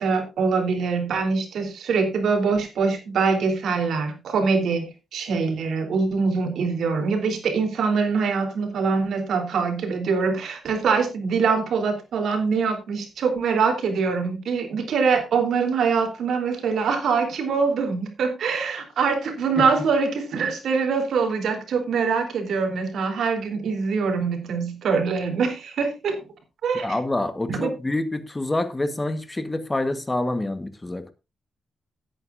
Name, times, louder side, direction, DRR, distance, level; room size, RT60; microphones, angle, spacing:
voice 1, 0.0-26.2 26.6-26.9 27.5-27.7, right 5 dB, 80° right, 3.4 m, -24 dB
voice 2, 26.8-31.1, left 2 dB, 15° left, 1.2 m, -27 dB
17.0 x 9.1 x 2.5 m
wide cardioid pair, 135°, 0 cm